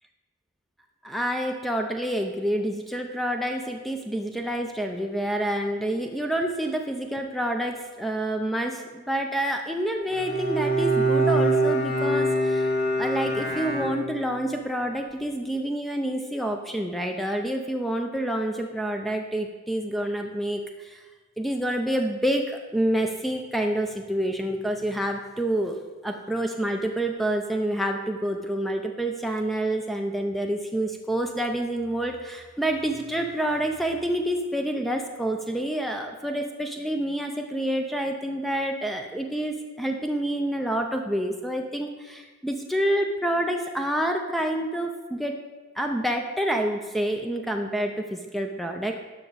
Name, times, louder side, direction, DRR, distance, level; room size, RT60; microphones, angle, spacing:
voice 1, 1.0-12.7 13.0-21.0 21.4-25.8 26.0-45.3 45.8-48.9, right 1 dB, ahead, 3 dB, 0.5 m, -28 dB
Bowed string instrument, 10.1-14.5, right 1 dB, 50° left, 2.3 m, -24 dB
11.5 x 6.1 x 4.1 m, 1.3 s
head